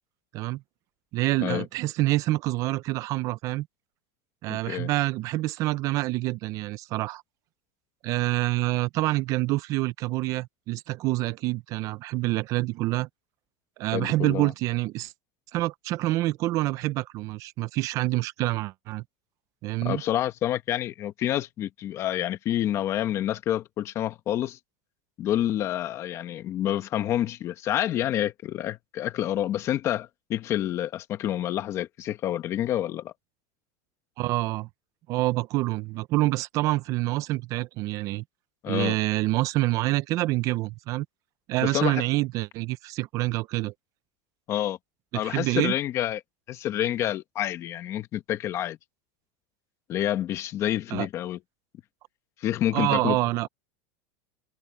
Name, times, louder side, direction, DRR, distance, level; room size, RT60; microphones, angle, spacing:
voice 1, 1.1-3.7 4.4-7.2 8.0-13.1 13.8-15.1 15.5-19.0 19.6-20.0 34.2-34.7 35.1-38.2 38.7-41.1 41.5-43.7 45.2-45.7 50.9-51.1 52.7-53.5, right 18 dB, 40° right, 0.5 m, -27 dB
voice 2, 4.5-4.9 13.9-14.5 19.8-24.6 25.2-33.1 38.6-39.0 41.6-42.0 44.5-44.8 45.1-46.2 46.5-48.8 49.9-51.4 52.4-53.2, left 12 dB, 35° left, 1.4 m, -28 dB
supercardioid pair, 155°, 9 cm